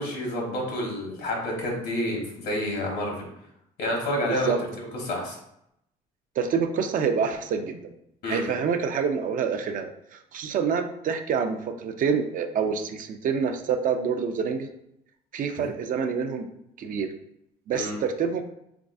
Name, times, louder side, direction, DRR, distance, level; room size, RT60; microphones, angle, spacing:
voice 1, 0.0-3.3 3.8-5.4 8.2-8.4 17.7-17.9, left 1 dB, 70° left, 0 dB, 1.4 m, -29 dB
voice 2, 6.4-7.9 8.3-14.7 15.3-16.5 16.8-17.1 17.7-18.4, right 6 dB, 50° right, 6 dB, 0.5 m, -27 dB
3.9 x 3.5 x 2.6 m, 0.78 s
cardioid pair, 110°, 17 cm